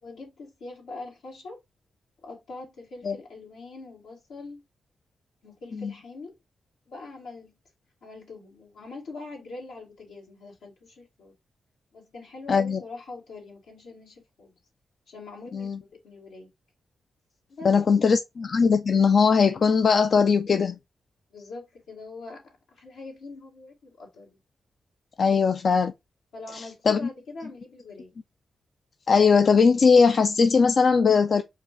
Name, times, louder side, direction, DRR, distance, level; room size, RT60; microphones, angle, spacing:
voice 1, 0.0-1.6 2.2-4.6 5.4-6.4 6.9-7.5 8.0-11.3 11.9-14.5 15.1-15.7 16.0-16.5 17.5-17.8 18.1-18.2 21.3-22.4 22.7-24.4 25.3-25.4 26.3-28.1, left 3 dB, 85° left, 2.0 m, -43 dB
voice 2, 12.5-12.8 15.5-15.8 17.6-20.8 25.2-25.9 26.5-27.0 29.1-31.4, left 5 dB, 60° left, 0.4 m, -20 dB
4.8 x 2.3 x 4.7 m
supercardioid pair, 45°, 0 cm